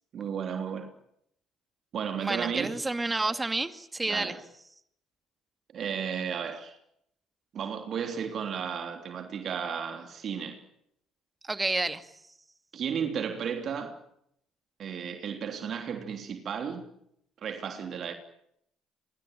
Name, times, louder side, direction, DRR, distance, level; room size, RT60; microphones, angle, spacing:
voice 1, 0.1-0.9 1.9-2.8 4.1-4.4 5.7-6.8 7.5-10.6 12.7-13.9 14.8-16.9 17.4-18.1, right 7 dB, 55° right, 3.3 m, -34 dB
voice 2, 2.2-4.4 11.4-12.0, right 2 dB, 20° right, 2.2 m, -29 dB
26.5 x 23.0 x 9.1 m
hypercardioid pair, 65°, 0 cm